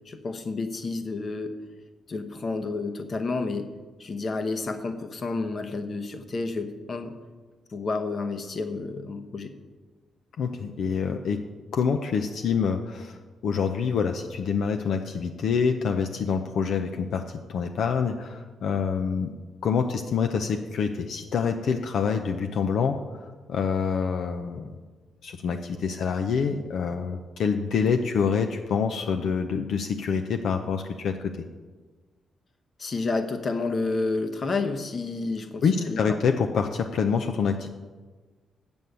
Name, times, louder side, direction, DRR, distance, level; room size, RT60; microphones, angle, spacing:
voice 1, 0.1-1.5 2.1-3.7 4.0-7.1 7.7-9.5 32.8-36.2, left 3 dB, 45° left, 7 dB, 1.0 m, -30 dB
voice 2, 10.4-19.3 19.6-24.7 25.2-31.5 35.6-37.7, left 6 dB, 70° left, 5 dB, 0.5 m, -26 dB
7.6 x 7.0 x 8.1 m, 1.4 s
cardioid pair, 105°, 0 cm